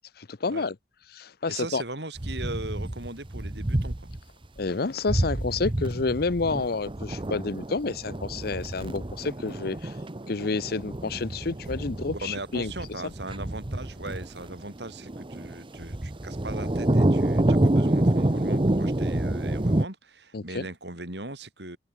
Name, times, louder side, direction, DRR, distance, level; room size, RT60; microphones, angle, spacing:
voice 1, 0.2-0.8 1.1-1.8 4.6-10.0 10.3-12.7 20.3-20.7, left 3 dB, 60° left, 0.7 m, -29 dB
voice 2, 1.5-4.1 12.1-21.8, right 2 dB, 70° right, 7.2 m, -39 dB
sound 1, 2.2-4.2 4.6-4.7 5.1-19.9, right 1 dB, 30° right, 1.0 m, -28 dB
head